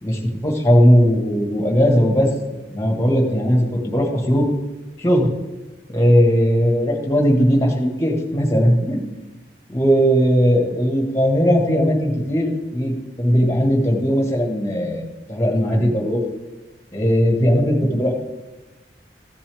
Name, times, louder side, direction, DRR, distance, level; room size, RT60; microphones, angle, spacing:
voice 1, 0.0-4.4 5.0-5.3 5.9-9.0 9.7-16.2 16.9-18.1, equal, 15° left, 1 dB, 1.6 m, -18 dB
14.5 x 7.0 x 3.5 m, 1.2 s
head